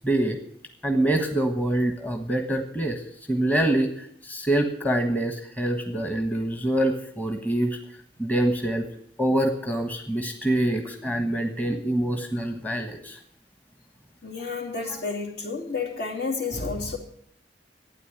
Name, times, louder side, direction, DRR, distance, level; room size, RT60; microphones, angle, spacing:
voice 1, 0.0-0.4 0.8-3.0 3.3-7.8 8.2-8.9 9.2-13.2, right 1 dB, 10° left, 1.3 m, -25 dB
voice 2, 14.2-17.0, left 4 dB, 65° left, 2.8 m, -30 dB
12.5 x 9.4 x 9.9 m
head